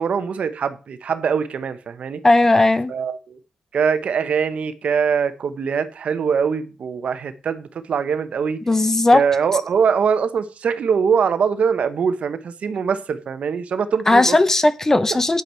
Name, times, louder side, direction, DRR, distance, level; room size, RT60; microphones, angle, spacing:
voice 1, 0.0-2.2 2.9-3.4 3.7-8.6 9.1-14.4, right 6 dB, 65° right, 1.0 m, -22 dB
voice 2, 2.2-2.9 8.7-9.2 14.1-15.4, left 2 dB, 20° left, 0.8 m, -16 dB
9.3 x 8.3 x 4.5 m
wide cardioid pair, 120°, 2 cm